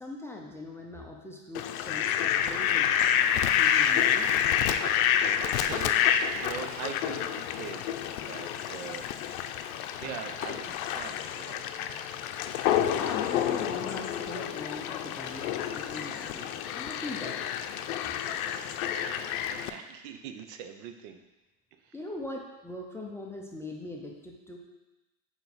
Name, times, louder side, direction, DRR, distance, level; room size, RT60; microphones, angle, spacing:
voice 1, 0.0-4.5 12.9-17.5 21.9-24.6, left 1 dB, 5° left, -1 dB, 0.6 m, -41 dB
Fowl, 1.5-19.7, left 9 dB, 80° left, 0.6 m, -28 dB
voice 2, 4.6-9.1 10.0-11.9 18.3-21.2 21.8-21.9, right 8 dB, 70° right, 7 dB, 0.9 m, -43 dB
7.0 x 4.7 x 4.1 m, 1.1 s
supercardioid pair, 135°, 42 cm